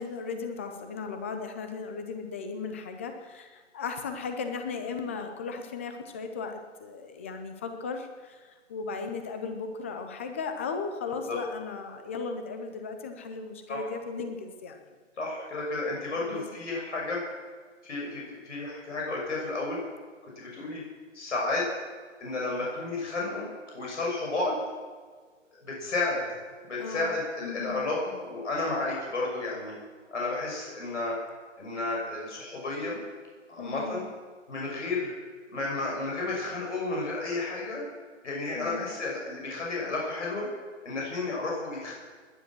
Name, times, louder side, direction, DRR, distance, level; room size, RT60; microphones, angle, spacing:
voice 1, 0.0-14.9 16.2-16.4 26.8-27.1 27.4-27.8 33.6-34.0 38.5-38.9, left 4 dB, 10° left, 6 dB, 0.5 m, -36 dB
voice 2, 15.2-17.2 17.8-19.8 20.4-20.8 21.1-21.7 22.2-23.5 23.7-24.6 25.7-26.4 26.7-29.7 30.1-31.2 31.6-33.0 33.5-34.1 34.5-35.1 35.5-37.8 38.2-40.5 40.8-41.9, left 2 dB, 70° left, -2 dB, 6.3 m, -32 dB
20.0 x 10.5 x 6.1 m, 1.5 s
hypercardioid pair, 150°, 38 cm